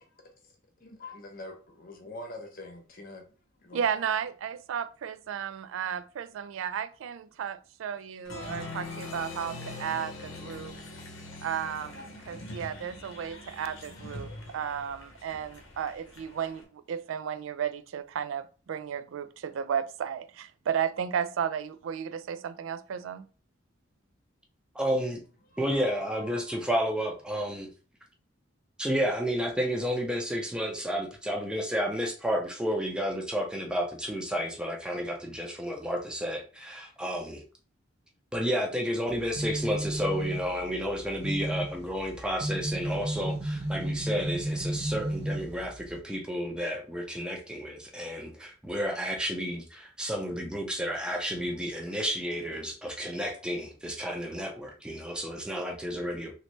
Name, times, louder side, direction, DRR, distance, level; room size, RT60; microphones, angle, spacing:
voice 1, 0.8-3.2 3.5-3.9 25.5-26.6, left 2 dB, 50° left, 0.8 m, -45 dB
voice 2, 3.7-10.8 11.4-23.3, right 8 dB, 85° right, 0.3 m, -34 dB
Applause, 8.2-16.6, left 2 dB, 85° left, 0.8 m, -43 dB
voice 3, 24.7-25.2 25.6-27.7 28.8-37.4 38.3-56.3, equal, 5° right, 0.5 m, -31 dB
sound 1, 39.1-46.0, right 1 dB, 55° right, 0.9 m, -33 dB
3.1 x 2.7 x 3.1 m
head